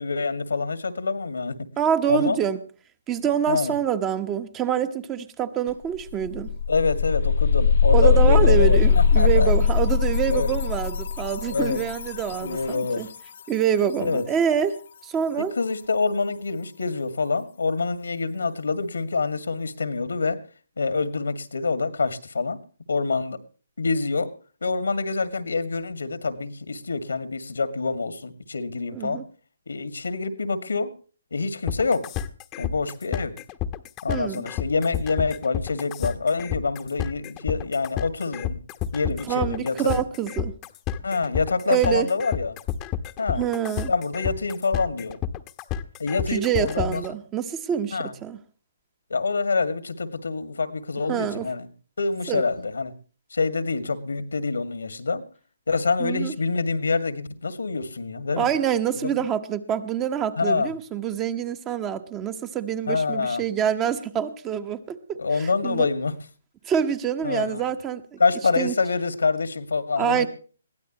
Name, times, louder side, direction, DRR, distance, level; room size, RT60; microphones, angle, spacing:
voice 1, 0.0-1.6 2.1-2.4 3.5-3.7 6.7-9.5 10.3-10.6 11.5-11.8 12.4-13.1 14.0-14.2 15.6-20.4 20.8-22.6 22.9-23.4 23.8-24.3 24.6-29.2 29.7-30.9 31.3-32.1 32.6-33.4 34.0-38.6 38.9-40.0 41.0-42.6 43.2-43.4 43.9-45.2 46.0-47.0 47.9-48.1 49.1-51.7 52.0-52.9 53.3-55.2 55.7-58.5 59.0-59.2 60.4-60.7 62.9-63.4 65.2-66.1 67.2-67.6 68.2-70.3, left 4 dB, 85° left, 12 dB, 2.1 m, -26 dB
voice 2, 1.8-2.6 3.1-6.5 7.9-13.1 13.5-14.8 15.0-15.5 28.9-29.2 34.1-34.5 39.3-40.5 41.7-42.1 43.4-43.9 46.3-48.4 51.1-51.5 52.3-52.4 56.0-56.3 58.4-65.9 66.7-68.2 68.6-68.7 70.0-70.3, right 9 dB, 20° right, 10 dB, 1.2 m, -26 dB
sound 1, 5.7-5.8 6.1-12.9, left 6 dB, 60° left, 0.7 m, -21 dB
sound 2, 31.7-47.1, left 10 dB, 20° left, 1.1 m, -30 dB
22.0 x 16.0 x 3.0 m, 0.39 s
hypercardioid pair, 145°, 0 cm